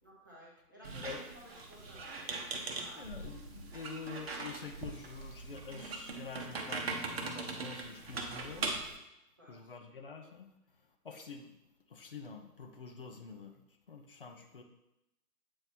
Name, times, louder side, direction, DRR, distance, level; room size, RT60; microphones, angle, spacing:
voice 1, 0.0-3.1 9.4-9.6, right 1 dB, 15° right, -8 dB, 0.6 m, -54 dB
Squeak, 0.8-9.0, right 3 dB, 40° right, 0.9 m, -41 dB
voice 2, 3.0-8.7 9.5-10.5 11.0-11.5 11.9-13.5 13.9-14.6, left 5 dB, 35° left, 5 dB, 0.6 m, -47 dB
8.1 x 2.9 x 4.1 m, 0.90 s
hypercardioid pair, 155°, 46 cm